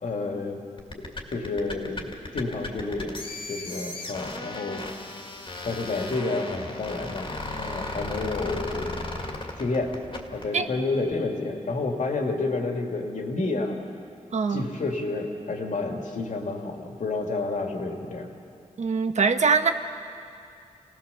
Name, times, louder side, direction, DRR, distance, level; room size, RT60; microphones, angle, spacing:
voice 1, 0.0-0.6 1.3-3.2 3.5-4.8 5.6-7.3 7.6-9.2 9.6-9.9 10.3-13.8 14.5-18.3, left 3 dB, 70° left, 2 dB, 2.4 m, -30 dB
sound 1, 0.8-10.5, left 2 dB, 40° left, 2.2 m, -35 dB
voice 2, 14.3-14.6 18.8-19.7, right 5 dB, 60° right, 8 dB, 1.1 m, -22 dB
27.5 x 17.5 x 6.9 m, 2.4 s
wide cardioid pair, 135°, 13 cm